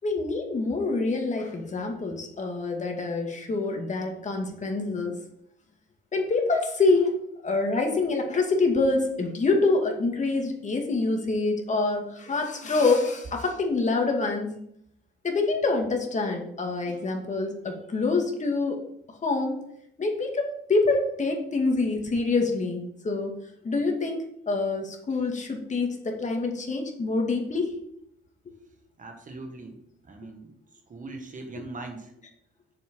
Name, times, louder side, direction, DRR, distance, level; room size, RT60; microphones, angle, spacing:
voice 1, 0.0-5.2 6.1-7.2 7.4-14.5 15.2-18.8 19.2-19.6 20.0-23.4 23.6-27.8, left 3 dB, 35° left, 2 dB, 2.2 m, -26 dB
voice 2, 29.0-30.5 30.9-32.1, right 3 dB, 40° right, 5 dB, 1.6 m, -41 dB
7.1 x 7.0 x 5.3 m, 0.72 s
cardioid pair, 90°, 20 cm